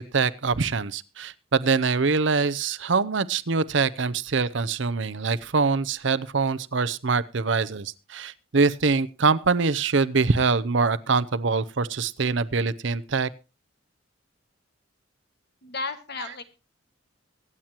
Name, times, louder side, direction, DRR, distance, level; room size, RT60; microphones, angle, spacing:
voice 1, 0.0-13.3, right 4 dB, 65° right, 15 dB, 0.7 m, -24 dB
voice 2, 15.6-16.4, left 3 dB, 55° left, 9 dB, 1.8 m, -33 dB
24.0 x 8.9 x 2.9 m, 0.30 s
head